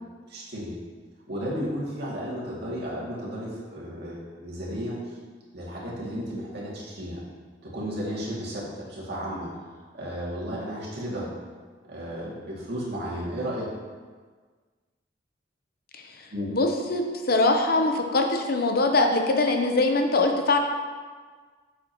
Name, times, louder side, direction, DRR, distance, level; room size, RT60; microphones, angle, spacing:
voice 1, 0.3-0.7 1.3-5.0 5.5-7.2 7.6-11.3 11.9-13.7 16.3-16.5, equal, 60° right, -6 dB, 2.3 m, -33 dB
voice 2, 15.9-20.6, left 2 dB, 55° left, 4 dB, 0.8 m, -23 dB
8.4 x 7.4 x 3.0 m, 1.5 s
head